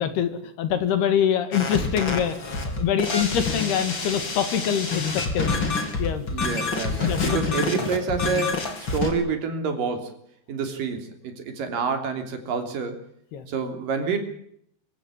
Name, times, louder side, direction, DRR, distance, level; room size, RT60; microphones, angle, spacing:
voice 1, 0.0-5.6 6.0-6.2 6.9-7.4 7.8-7.9 13.3-13.4, left 8 dB, 70° left, 10 dB, 4.0 m, -25 dB
sound 1, 1.5-9.1, left 4 dB, 30° left, 3.5 m, -27 dB
voice 2, 6.3-10.2 10.5-13.0 13.5-14.2, right 5 dB, 55° right, 6 dB, 4.7 m, -28 dB
24.5 x 14.5 x 9.9 m, 0.68 s
omnidirectional pair, 4.9 m